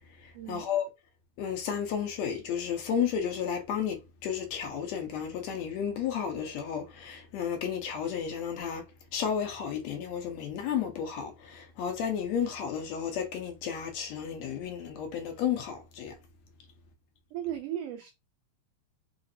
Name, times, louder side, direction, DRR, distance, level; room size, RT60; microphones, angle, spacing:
voice 1, 0.2-0.9 1.4-16.2, left 8 dB, 75° left, 1.9 m, -32 dB
voice 2, 17.3-18.1, right 11 dB, 90° right, 1.4 m, -36 dB
4.9 x 2.5 x 2.7 m
omnidirectional pair, 3.3 m